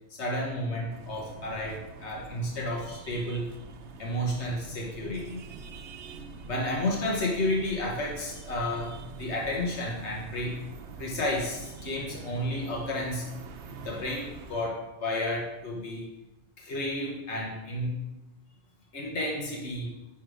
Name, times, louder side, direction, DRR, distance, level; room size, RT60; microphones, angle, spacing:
voice 1, 0.1-3.6 4.0-5.4 6.5-10.6 11.0-13.2 13.8-16.1 16.6-18.0 18.9-19.9, left 1 dB, 90° left, -2 dB, 1.5 m, -32 dB
sound 1, 0.9-14.7, right 4 dB, 85° right, 1.0 m, -45 dB
9.8 x 3.6 x 4.9 m, 1.0 s
omnidirectional pair, 1.1 m